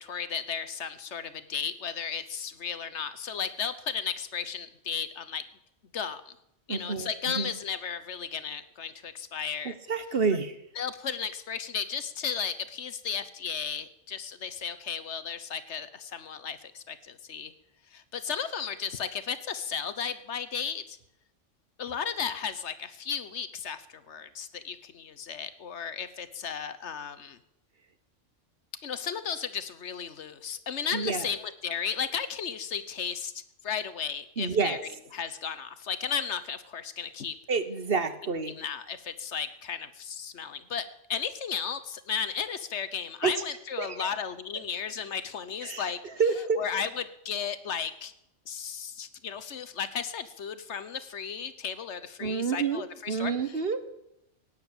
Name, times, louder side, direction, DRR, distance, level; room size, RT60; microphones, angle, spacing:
voice 1, 0.0-5.4 5.9-6.3 6.7-9.8 10.8-17.5 17.9-21.0 21.8-27.4 28.8-33.3 33.6-37.4 38.4-46.0 46.6-48.1 48.5-53.6, left 7 dB, 70° left, 13 dB, 1.3 m, -34 dB
voice 2, 6.7-7.5 9.6-10.6 30.9-31.3 34.4-34.8 37.5-38.5 43.2-43.3 43.8-44.1 45.6-45.8 46.2-46.6 52.2-52.8 53.1-53.8, right 5 dB, 55° right, 10 dB, 1.4 m, -28 dB
17.0 x 9.2 x 8.8 m, 0.81 s
omnidirectional pair, 1.2 m